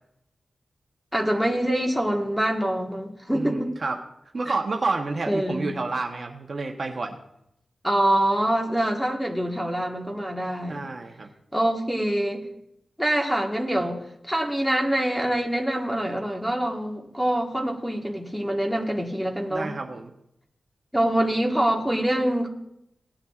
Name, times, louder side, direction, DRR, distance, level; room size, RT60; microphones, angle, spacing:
voice 1, 1.1-3.7 5.3-5.7 7.8-10.9 11.5-12.4 13.0-19.7 20.9-22.5, right 1 dB, ahead, 1 dB, 1.5 m, -25 dB
voice 2, 3.3-4.0 4.3-7.2 10.7-11.3 19.5-20.1, right 3 dB, 50° right, 2 dB, 1.0 m, -29 dB
18.0 x 10.0 x 2.4 m, 0.78 s
wide cardioid pair, 115°, 0 cm